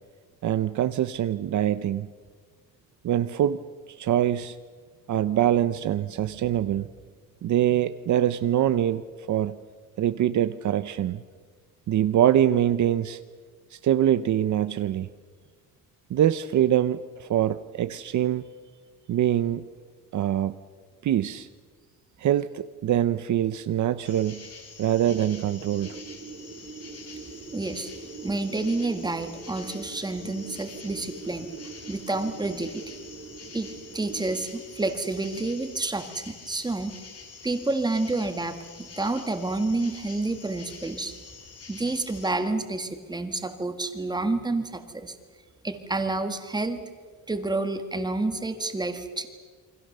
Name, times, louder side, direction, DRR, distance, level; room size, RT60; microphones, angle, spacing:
voice 1, 0.4-2.1 3.0-3.6 4.0-4.6 5.1-6.9 7.4-9.0 9.3-9.6 10.0-11.2 11.9-13.2 13.7-15.1 16.1-18.5 19.1-19.6 20.1-20.5 21.0-21.5 22.2-24.5 24.8-26.0, right 11 dB, 55° right, 12 dB, 0.8 m, -24 dB
sound 1, 24.0-42.3, left 5 dB, 45° left, 4.4 m, -46 dB
sound 2, 25.6-34.5, right 5 dB, 40° right, 3.5 m, -43 dB
voice 2, 27.5-27.9 28.2-31.5 31.9-32.8 33.5-36.9 37.4-41.1 41.7-45.2 45.6-46.8 47.3-49.3, right 2 dB, 10° right, 7 dB, 1.7 m, -29 dB
28.5 x 24.5 x 6.7 m, 1.6 s
cardioid pair, 180°, 36 cm